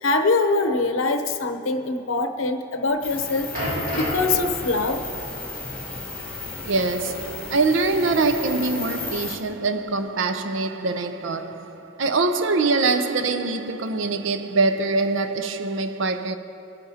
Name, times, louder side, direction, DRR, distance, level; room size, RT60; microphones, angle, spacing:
voice 1, 0.0-3.5 3.9-5.1, left 3 dB, 80° left, 0.8 m, -23 dB
sound 1, 2.9-8.3 9.0-9.1, equal, 45° right, 2.7 m, -34 dB
sound 2, 3.0-9.4, left 3 dB, 5° left, 1.4 m, -34 dB
voice 2, 6.7-16.4, right 3 dB, 70° right, 0.6 m, -24 dB
20.0 x 10.5 x 2.8 m
head